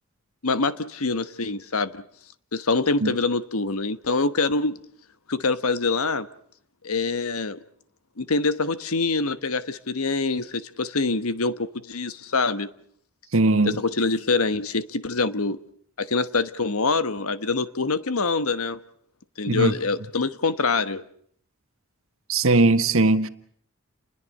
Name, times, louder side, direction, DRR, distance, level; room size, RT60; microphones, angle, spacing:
voice 1, 0.4-2.0 2.5-4.8 5.3-6.3 6.8-7.6 8.2-12.7 13.6-15.6 16.0-18.8 19.4-21.0, left 3 dB, 85° left, 1.2 m, -25 dB
voice 2, 13.3-13.8 19.5-19.7 22.3-23.3, right 2 dB, 70° right, 1.5 m, -19 dB
29.5 x 21.5 x 6.6 m
head